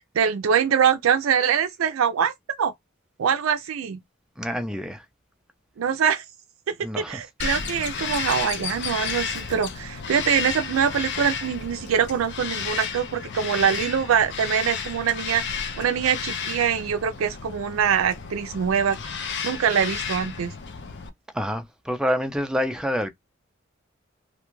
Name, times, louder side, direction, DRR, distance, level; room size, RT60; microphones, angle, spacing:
voice 1, 0.1-2.3 2.6-2.7 3.2-4.0 5.8-6.2 6.7-19.0 19.4-20.5, right 7 dB, 75° right, 0.4 m, -24 dB
voice 2, 4.4-5.0 6.8-7.2 21.3-23.1, equal, 5° right, 0.4 m, -27 dB
Bird vocalization bird call bird song, 7.4-21.1, left 6 dB, 55° left, 0.5 m, -32 dB
2.5 x 2.3 x 3.0 m
head